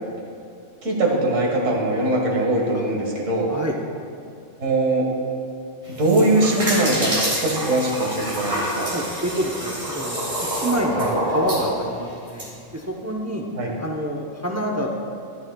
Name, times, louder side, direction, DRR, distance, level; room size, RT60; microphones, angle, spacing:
voice 1, 0.8-3.5 4.6-5.1 6.0-8.9 10.9-11.1 13.6-13.7, right 2 dB, 85° right, -2 dB, 2.0 m, -21 dB
sound 1, 5.8-12.5, right 1 dB, 35° right, 2.4 m, -27 dB
voice 2, 8.8-10.3 10.5-12.5 12.7-13.5 13.8-15.1, equal, 20° right, 1 dB, 0.5 m, -27 dB
12.5 x 12.0 x 2.3 m, 2.5 s
omnidirectional pair, 1.3 m